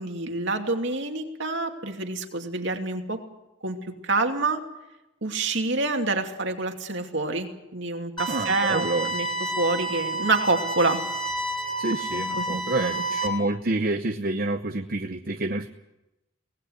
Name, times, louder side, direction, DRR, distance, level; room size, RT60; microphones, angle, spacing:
voice 1, 0.0-3.2 3.6-3.8 4.0-4.6 5.2-9.3 9.6-11.0 12.1-12.9, right 3 dB, 60° right, 4 dB, 2.7 m, -27 dB
sound 1, 8.2-13.3, right 2 dB, 25° left, 3.1 m, -30 dB
voice 2, 8.3-9.1 11.8-15.7, right 2 dB, 45° right, 6 dB, 0.9 m, -28 dB
24.0 x 19.0 x 8.0 m, 0.94 s
head